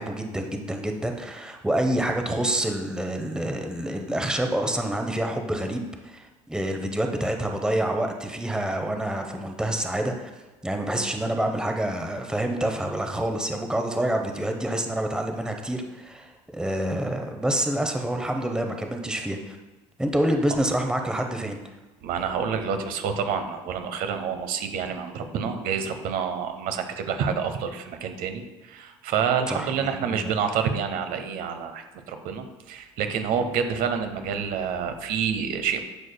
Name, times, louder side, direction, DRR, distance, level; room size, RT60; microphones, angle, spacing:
voice 1, 0.0-10.3 10.6-19.6 20.0-21.6 29.5-30.3, right 1 dB, 5° right, 4 dB, 0.8 m, -27 dB
voice 2, 22.0-35.8, right 7 dB, 65° right, 7 dB, 0.8 m, -28 dB
11.0 x 4.9 x 2.2 m, 1.2 s
supercardioid pair, 80°, 16 cm